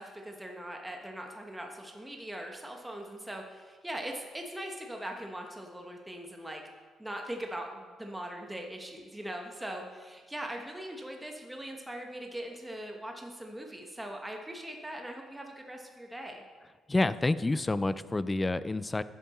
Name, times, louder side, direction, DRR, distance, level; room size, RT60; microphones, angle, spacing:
voice 1, 0.0-6.6 7.0-16.4, right 1 dB, 10° right, 2 dB, 1.0 m, -41 dB
voice 2, 16.9-19.0, left 2 dB, 20° left, 15 dB, 0.4 m, -28 dB
10.0 x 7.5 x 4.2 m, 1.5 s
cardioid pair, 90°, 0 cm